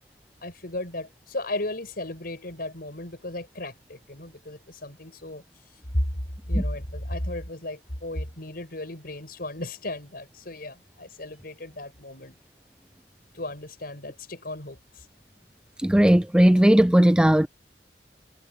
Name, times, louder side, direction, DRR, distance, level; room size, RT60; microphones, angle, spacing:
voice 1, 0.4-5.4 5.9-12.4 13.3-15.0, left 1 dB, 60° left, 7.0 m, -34 dB
voice 2, 15.8-17.5, right 1 dB, 5° right, 0.4 m, -17 dB
head